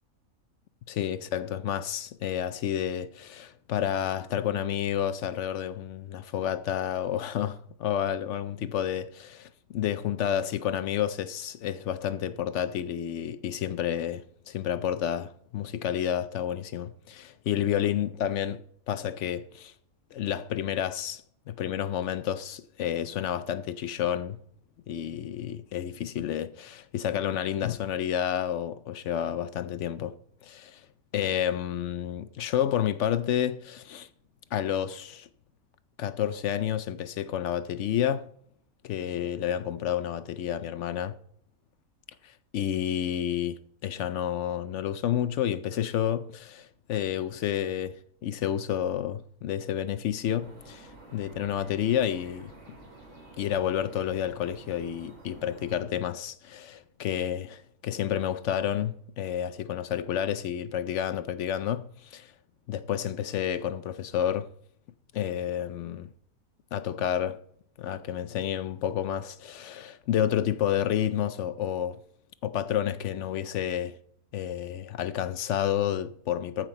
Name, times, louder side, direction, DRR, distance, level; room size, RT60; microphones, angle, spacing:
voice 1, 0.9-18.6 18.9-19.7 20.1-24.4 24.9-30.1 30.4-30.8 31.1-34.1 34.5-35.3 36.0-38.3 38.8-41.2 42.2-52.5 53.4-62.3 62.7-64.5 65.1-66.1 66.7-67.4 67.8-72.0 72.4-73.9 74.3-76.7, left 10 dB, 65° left, 0.7 m, -30 dB
sound 1, 50.4-55.8, right 2 dB, 80° right, 3.9 m, -50 dB
14.0 x 6.0 x 4.5 m
omnidirectional pair, 1.5 m